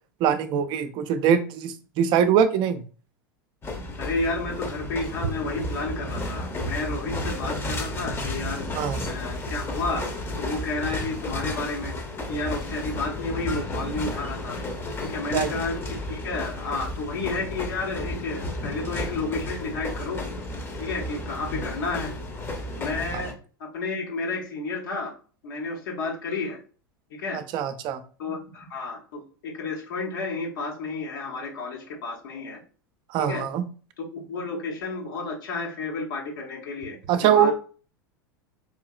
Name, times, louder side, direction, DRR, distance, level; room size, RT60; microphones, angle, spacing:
voice 1, 0.2-2.8 8.7-9.0 15.3-15.5 27.3-28.0 33.1-33.6 37.1-37.5, right 8 dB, 45° right, 10 dB, 0.5 m, -22 dB
sound 1, 3.6-23.3, left 1 dB, 20° left, 0.8 m, -33 dB
voice 2, 4.0-8.7 9.1-10.1 10.4-12.0 12.3-14.6 15.0-20.3 20.7-22.1 22.8-23.3 23.6-25.1 25.4-26.6 27.1-27.4 28.2-32.6 33.2-33.4 34.0-37.5, left 3 dB, 70° left, 0 dB, 1.0 m, -31 dB
4.9 x 2.7 x 2.3 m, 0.39 s
hypercardioid pair, 90°, 11 cm